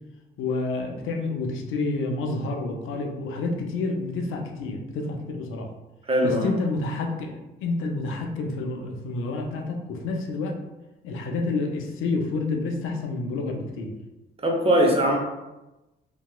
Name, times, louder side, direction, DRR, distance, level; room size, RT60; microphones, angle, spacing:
voice 1, 0.4-5.7 6.2-10.5 11.0-13.9, left 3 dB, 75° left, 2 dB, 0.5 m, -29 dB
voice 2, 6.1-6.5 14.4-15.2, equal, 30° right, 0 dB, 0.7 m, -20 dB
2.8 x 2.2 x 2.2 m, 1.0 s
supercardioid pair, 60°, 21 cm